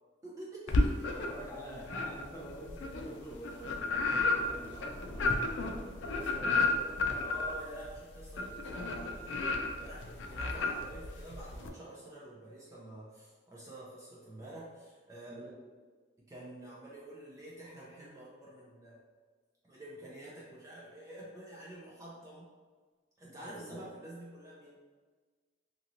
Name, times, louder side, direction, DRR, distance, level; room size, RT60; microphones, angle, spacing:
voice 1, 0.2-1.1 7.1-15.5 16.3-19.0 19.6-22.5 23.2-24.8, right 1 dB, 20° right, -6 dB, 0.4 m, -48 dB
sound 1, 0.7-1.5 1.9-11.7, left 3 dB, 90° left, 0.4 m, -32 dB
voice 2, 1.0-7.3 15.2-15.5 23.4-23.8, equal, 15° left, -5 dB, 0.7 m, -47 dB
2.9 x 2.9 x 2.6 m, 1.4 s
head